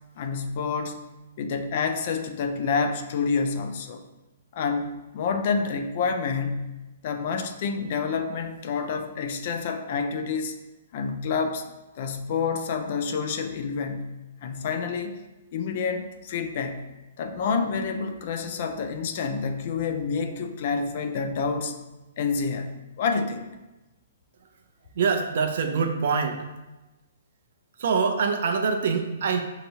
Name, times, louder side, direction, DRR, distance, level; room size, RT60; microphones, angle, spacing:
voice 1, 0.2-1.0 1.4-4.0 4.5-6.7 7.0-10.5 10.9-11.6 12.0-15.2 15.5-16.8 17.2-21.8 22.2-22.7 23.0-23.5, left 5 dB, 45° left, 6 dB, 0.4 m, -28 dB
voice 2, 24.9-26.5 27.8-29.4, right 5 dB, 60° right, 5 dB, 0.5 m, -24 dB
5.3 x 2.9 x 2.8 m, 1.1 s
hypercardioid pair, 160°, 0 cm